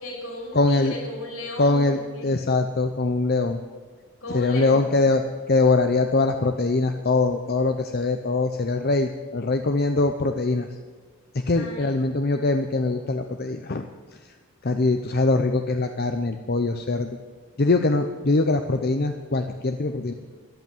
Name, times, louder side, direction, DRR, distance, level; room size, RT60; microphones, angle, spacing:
voice 1, 0.0-2.3 4.2-4.9 11.5-11.9, left 1 dB, 80° left, -1 dB, 5.7 m, -35 dB
voice 2, 0.5-0.9 1.6-3.6 4.3-5.2 5.5-10.7 11.5-13.8 14.6-17.1 17.6-20.1, left 3 dB, 45° left, 6 dB, 0.7 m, -22 dB
14.0 x 11.0 x 9.1 m, 1.5 s
head